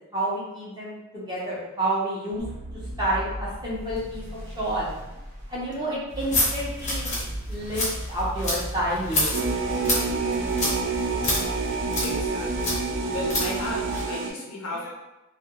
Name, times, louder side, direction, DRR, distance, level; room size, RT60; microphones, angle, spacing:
voice 1, 0.1-2.4 3.0-4.9 5.5-7.2 7.5-9.4, right 1 dB, 20° right, -7 dB, 0.7 m, -29 dB
sound 1, 2.4-6.5, equal, 75° right, 0.9 m, -38 dB
sound 2, 6.1-14.1, left 1 dB, 30° left, 0.6 m, -29 dB
sound 3, 9.3-14.3, right 4 dB, 55° right, 0.4 m, -28 dB
voice 2, 12.0-12.7 13.1-14.9, left 2 dB, 75° left, -2 dB, 0.6 m, -34 dB
2.3 x 2.2 x 2.8 m, 1.0 s
head